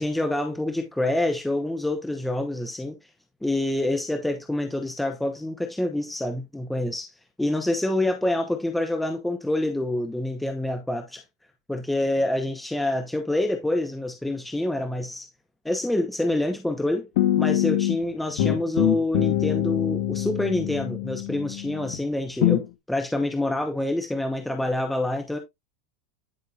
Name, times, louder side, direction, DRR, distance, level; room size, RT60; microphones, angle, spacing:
voice 1, 0.0-3.0 3.4-7.1 7.4-11.2 11.7-15.3 15.6-17.1 17.4-25.4, left 1 dB, 5° left, 0.9 m, -27 dB
sound 1, 17.2-18.0 18.4-22.0 22.4-22.7, left 13 dB, 65° left, 1.5 m, -24 dB
11.0 x 5.6 x 2.4 m
supercardioid pair, 150°, 3 cm